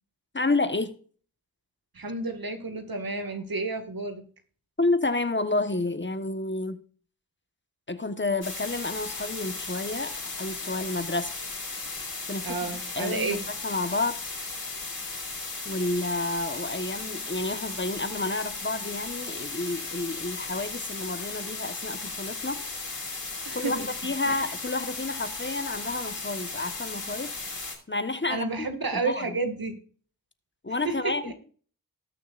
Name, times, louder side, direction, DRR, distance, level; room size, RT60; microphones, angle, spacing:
voice 1, 0.3-0.9 4.8-6.8 7.9-11.3 12.3-14.2 15.6-22.6 23.5-27.3 27.9-29.4 30.6-31.3, left 2 dB, 30° left, 1.2 m, -30 dB
voice 2, 1.9-4.2 12.4-13.5 23.5-23.9 24.3-24.4 28.3-29.8 30.8-31.3, right 3 dB, 70° right, 2.0 m, -31 dB
sound 1, 8.4-27.7, left 3 dB, 70° left, 5.4 m, -36 dB
19.0 x 6.5 x 2.5 m
cardioid pair, 45°, 37 cm